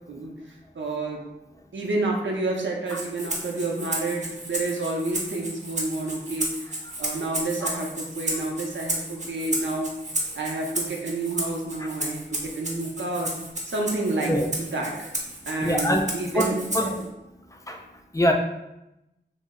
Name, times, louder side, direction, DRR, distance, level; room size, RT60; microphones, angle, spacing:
voice 1, 0.7-1.2 1.7-6.7 7.0-9.9 10.3-13.3 13.6-15.1 15.5-17.1, right 2 dB, 85° right, -1 dB, 0.6 m, -29 dB
Rattle (instrument), 2.9-17.1, right 1 dB, 40° right, 0.7 m, -33 dB
voice 2, 15.6-16.0 16.3-16.5 16.7-16.9 17.7-17.8 18.1-18.3, equal, 15° left, 2 dB, 0.4 m, -23 dB
3.0 x 2.0 x 3.5 m, 0.89 s
wide cardioid pair, 60°, 19 cm